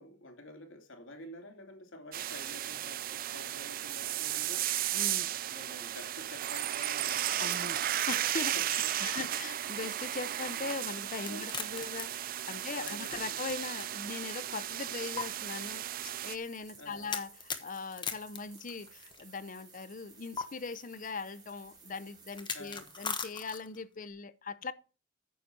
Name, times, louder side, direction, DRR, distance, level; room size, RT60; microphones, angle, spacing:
voice 1, 0.0-4.7 5.4-7.3 8.5-9.6 11.3-11.5 12.8-13.4 16.8-17.2 22.5-22.9, left 1 dB, 75° left, 2.6 m, -49 dB
sound 1, 2.1-16.4, right 12 dB, 45° right, 0.4 m, -35 dB
voice 2, 4.9-5.3 7.4-17.3 17.6-24.7, left 4 dB, 40° left, 0.7 m, -40 dB
sound 2, 7.7-23.3, right 4 dB, 20° right, 4.6 m, -58 dB
sound 3, 11.2-13.8 14.2-14.3 15.2-15.3 17.1-19.2 20.4-20.5 22.3-23.8, left 5 dB, 25° left, 1.1 m, -38 dB
9.5 x 6.7 x 4.4 m
head